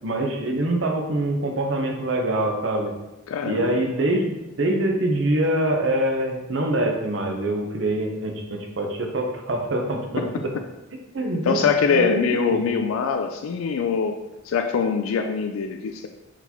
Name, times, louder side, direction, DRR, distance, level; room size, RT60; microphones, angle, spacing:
voice 1, 0.0-2.9 3.4-10.5 11.1-12.7, right 1 dB, 65° right, 2 dB, 0.7 m, -24 dB
voice 2, 3.3-3.8 11.4-14.2 14.4-16.1, left 6 dB, 90° left, 5 dB, 0.4 m, -23 dB
4.5 x 3.9 x 2.8 m, 0.98 s
head